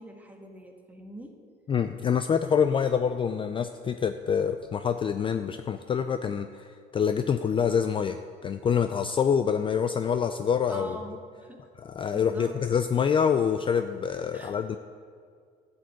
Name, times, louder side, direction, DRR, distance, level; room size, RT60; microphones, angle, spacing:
voice 1, 0.0-1.4 10.7-11.7 12.1-12.6 14.3-14.6, right 1 dB, 10° right, 1 dB, 1.5 m, -43 dB
voice 2, 1.7-6.7 6.9-8.2 8.4-11.0 11.8-14.8, left 7 dB, 30° left, 8 dB, 0.4 m, -26 dB
11.5 x 5.3 x 7.6 m, 2.1 s
cardioid pair, 110°, 17 cm